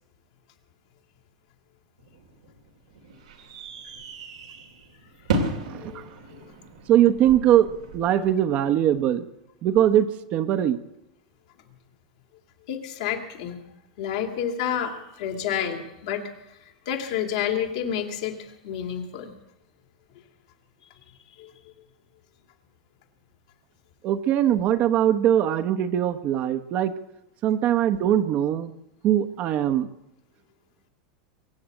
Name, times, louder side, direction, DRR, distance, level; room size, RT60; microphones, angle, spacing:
sound 1, 2.0-8.0, right 2 dB, 85° right, 2.4 m, -34 dB
voice 1, 5.8-6.4 12.7-13.6 14.0-19.3 21.1-21.5, left 9 dB, 70° left, 3 dB, 2.6 m, -30 dB
voice 2, 6.9-7.7 7.9-9.2 9.6-10.8 24.0-26.9 27.4-28.7 29.0-29.9, right 11 dB, 45° right, 9 dB, 1.1 m, -21 dB
23.0 x 7.8 x 7.7 m, 0.88 s
hypercardioid pair, 105°, 3 cm